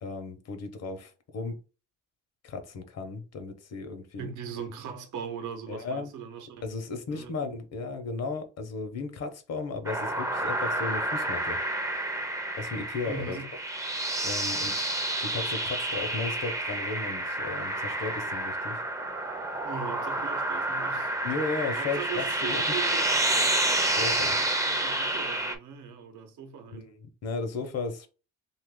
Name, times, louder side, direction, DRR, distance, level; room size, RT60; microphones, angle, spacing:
voice 1, 0.0-1.6 2.4-4.3 5.7-6.1 6.6-11.6 12.6-13.4 14.2-14.9 15.2-18.8 21.2-22.6 23.9-24.4 26.7-28.1, left 4 dB, 55° left, 0.8 m, -35 dB
voice 2, 4.2-6.6 7.1-7.3 13.0-13.4 14.4-14.6 19.6-21.2 21.8-23.4 23.9-26.9, right 7 dB, 75° right, 0.8 m, -40 dB
sound 1, 9.9-25.6, right 1 dB, 10° right, 0.5 m, -29 dB
2.8 x 2.5 x 3.6 m
cardioid pair, 90°, 30 cm